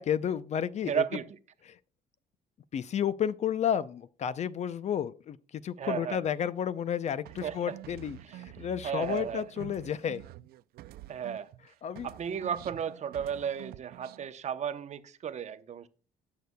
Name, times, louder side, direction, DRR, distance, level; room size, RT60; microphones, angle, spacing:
voice 1, 0.0-1.0 1.7-1.8 2.7-10.2 11.8-12.1, left 9 dB, 40° left, 0.5 m, -32 dB
voice 2, 0.8-1.4 5.8-6.2 7.4-7.8 8.2-9.4 11.1-11.5 12.0-15.9, right 8 dB, 45° right, 0.8 m, -34 dB
sound 1, 7.3-11.7 12.0-14.3, right 15 dB, 65° right, 0.4 m, -48 dB
17.0 x 6.7 x 2.2 m
cardioid pair, 110°, 17 cm